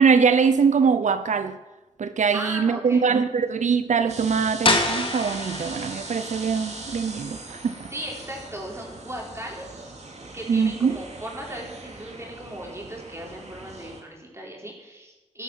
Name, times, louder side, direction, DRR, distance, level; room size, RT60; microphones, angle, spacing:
voice 1, 0.0-1.6 2.0-7.9 10.5-11.0, right 6 dB, 90° right, 0.7 m, -22 dB
voice 2, 2.3-3.0 7.9-9.9 10.3-15.4, right 1 dB, 20° right, 4.6 m, -37 dB
sound 1, 4.1-14.0, right 2 dB, 70° right, 2.7 m, -40 dB
sound 2, 4.6-10.3, left 2 dB, 45° left, 2.3 m, -30 dB
12.0 x 11.5 x 7.6 m
cardioid pair, 55°, 12 cm